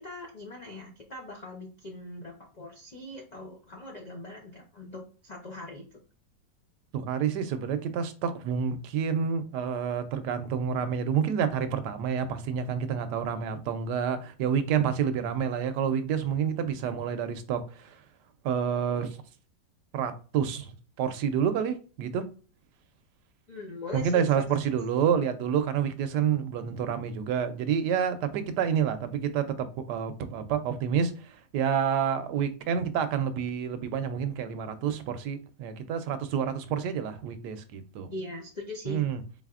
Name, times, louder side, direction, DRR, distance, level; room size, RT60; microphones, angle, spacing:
voice 1, 0.0-6.0 16.8-16.9 23.5-24.4 38.1-39.0, left 2 dB, 75° left, 0.4 m, -41 dB
voice 2, 6.9-18.0 18.4-19.2 19.9-22.3 23.9-38.1 38.9-39.2, right 7 dB, 75° right, 1.1 m, -28 dB
4.0 x 3.9 x 2.4 m
omnidirectional pair, 1.9 m